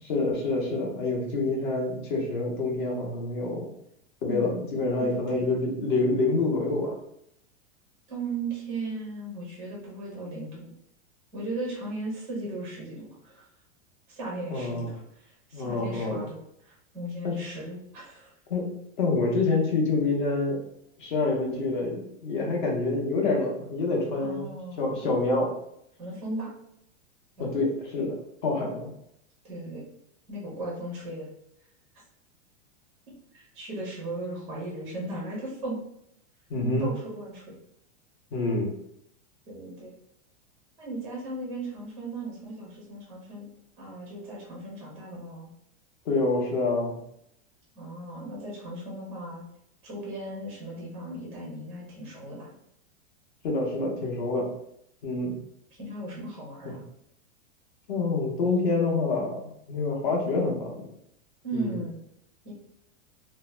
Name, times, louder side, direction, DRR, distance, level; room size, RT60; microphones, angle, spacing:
voice 1, 0.0-3.7 4.2-7.0 14.5-14.9 15.5-16.2 17.2-17.4 18.5-18.7 19.0-20.6 21.0-24.4 24.8-25.5 27.4-28.2 28.4-28.9 36.5-36.9 38.3-38.7 46.0-47.0 53.4-54.5 55.0-55.4 56.6-56.8 57.9-60.9 61.5-61.8, left 3 dB, 45° left, 0 dB, 0.8 m, -27 dB
voice 2, 4.3-5.4 8.1-10.7 11.3-13.4 14.1-16.4 16.6-18.3 24.2-24.8 26.0-26.5 27.4-27.6 29.4-29.8 30.3-31.3 33.3-35.8 36.8-37.6 39.5-39.9 40.8-43.5 43.8-45.5 47.7-49.4 49.8-52.5 55.8-56.8 61.4-62.0 62.4-62.5, right 2 dB, 5° right, -4 dB, 0.4 m, -37 dB
2.7 x 2.1 x 3.1 m, 0.76 s
supercardioid pair, 180°, 36 cm